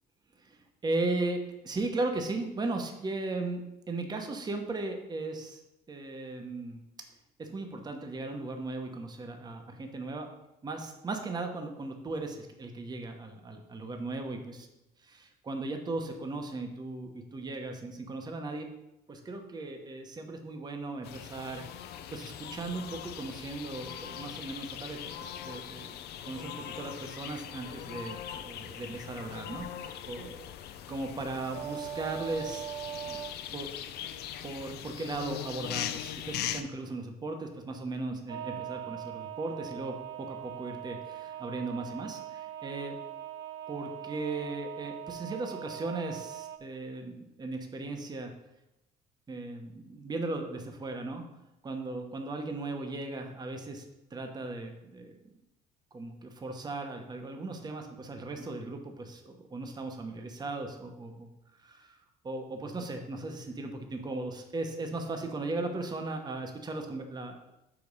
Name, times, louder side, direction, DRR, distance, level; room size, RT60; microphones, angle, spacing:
voice 1, 0.8-5.6 5.9-6.8 7.4-10.3 10.6-14.7 15.0-18.7 19.1-21.7 22.1-25.0 25.4-26.0 26.2-30.4 30.9-32.6 33.1-33.2 33.5-33.7 34.4-43.0 43.7-48.3 49.3-51.2 51.6-53.8 54.1-55.1 55.9-61.3 61.6-67.4, right 2 dB, 25° right, 4 dB, 0.9 m, -37 dB
sound 1, 21.0-36.6, left 10 dB, 75° left, 0.6 m, -41 dB
sound 2, 31.5-33.3 38.3-46.6, right 11 dB, 80° right, 0.6 m, -41 dB
6.0 x 5.0 x 5.3 m, 0.91 s
cardioid pair, 110°, 17 cm